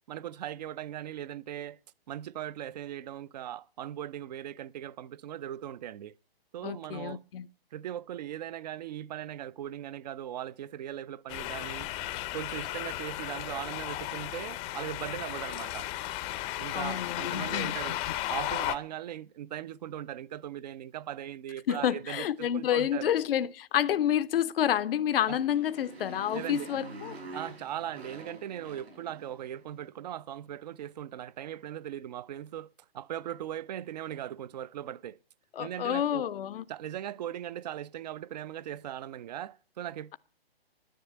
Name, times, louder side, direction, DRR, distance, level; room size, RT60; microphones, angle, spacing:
voice 1, 0.1-1.8 2.1-6.1 6.5-7.2 7.7-11.9 12.3-15.9 16.6-18.0 18.3-23.1 25.3-25.4 26.3-26.7 27.3-35.2 35.6-36.3 36.7-40.2, right 11 dB, 45° right, 0.5 m, -39 dB
voice 2, 6.6-7.5 16.7-18.0 21.7-27.2 35.5-36.6, left 10 dB, 65° left, 0.6 m, -29 dB
sound 1, 11.3-18.8, left 15 dB, 15° left, 0.6 m, -35 dB
Motorcycle, 25.0-29.6, right 2 dB, 90° right, 6.2 m, -46 dB
10.5 x 9.9 x 7.8 m
hypercardioid pair, 140°, 31 cm